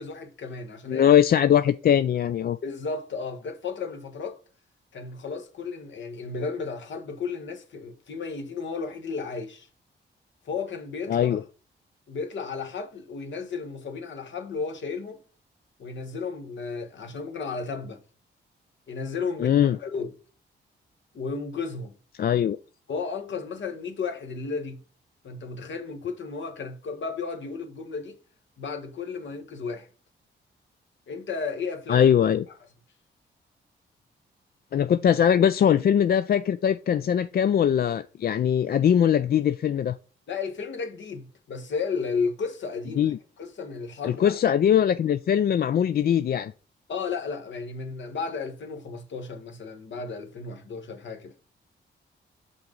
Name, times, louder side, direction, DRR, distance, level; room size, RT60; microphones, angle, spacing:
voice 1, 0.0-1.2 2.6-4.4 4.9-9.7 10.4-11.4 12.1-15.2 15.8-18.0 18.9-20.1 21.1-21.9 22.9-24.8 25.2-28.2 28.6-29.9 31.1-32.0 40.3-44.3 46.9-51.3, left 5 dB, 65° left, 1.3 m, -33 dB
voice 2, 0.9-2.6 11.1-11.4 19.4-19.8 22.2-22.6 31.9-32.4 34.7-40.0 43.0-43.2 44.0-46.5, left 9 dB, 50° left, 0.4 m, -21 dB
5.7 x 3.9 x 5.2 m
cardioid pair, 70°, 20 cm